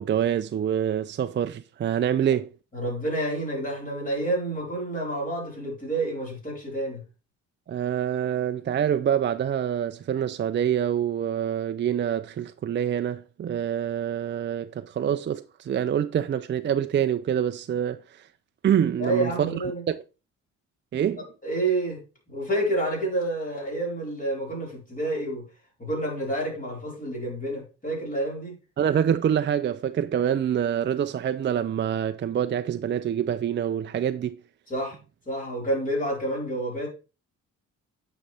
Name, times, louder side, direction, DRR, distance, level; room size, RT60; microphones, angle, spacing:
voice 1, 0.0-2.5 7.7-18.3 18.6-19.3 19.9-20.0 20.9-21.3 28.8-34.4, right 9 dB, 40° right, 0.5 m, -26 dB
voice 2, 2.7-7.0 19.0-19.8 21.4-22.0 22.3-25.5 25.8-28.5 34.7-35.0 35.3-36.9, right 1 dB, 25° left, 4.7 m, -29 dB
8.9 x 5.5 x 3.4 m
cardioid pair, 90°, 30 cm